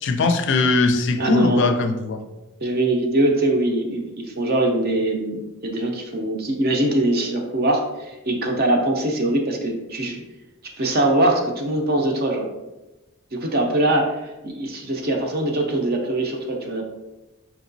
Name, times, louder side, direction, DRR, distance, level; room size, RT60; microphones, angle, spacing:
voice 1, 0.0-2.2, left 3 dB, 60° left, 7 dB, 0.4 m, -20 dB
voice 2, 1.2-1.7 2.6-10.2 10.8-12.5 13.3-16.8, right 1 dB, 50° right, 2 dB, 0.6 m, -22 dB
4.6 x 2.9 x 2.6 m, 1.0 s
head